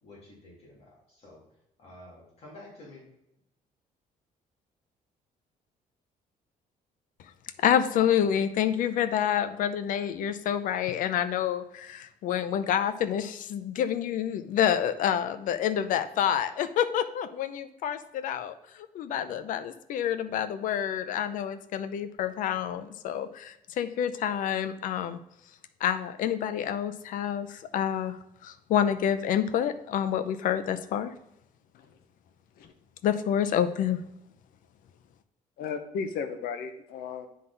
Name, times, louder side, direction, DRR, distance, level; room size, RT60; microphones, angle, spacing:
voice 1, 0.0-1.4 1.8-3.0, left 1 dB, 45° left, -4 dB, 2.2 m, -50 dB
voice 2, 7.6-25.2 25.8-31.1 33.0-34.0, left 9 dB, 60° left, 11 dB, 0.6 m, -28 dB
voice 3, 35.6-37.3, left 6 dB, 85° left, 8 dB, 0.9 m, -35 dB
9.4 x 3.9 x 3.9 m, 0.84 s
cardioid pair, 170°, 15 cm